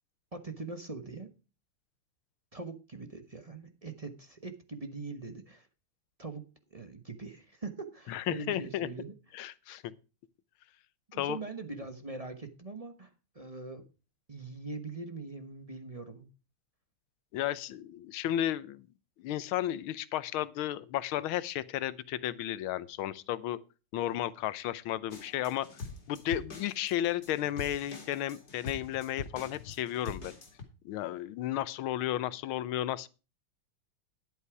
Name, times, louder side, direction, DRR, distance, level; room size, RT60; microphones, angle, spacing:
voice 1, 0.3-1.3 2.5-5.7 6.2-9.1 11.1-13.1 13.3-13.9 14.3-16.3, right 3 dB, 25° right, 0.8 m, -42 dB
voice 2, 8.1-8.9 9.3-9.9 11.1-11.4 17.3-18.9 19.2-23.6 23.9-25.7 26.1-30.3 30.8-33.1, left 12 dB, 75° left, 1.5 m, -33 dB
sound 1, 25.1-30.6, left 4 dB, 45° left, 2.8 m, -44 dB
11.5 x 8.3 x 4.7 m
omnidirectional pair, 2.4 m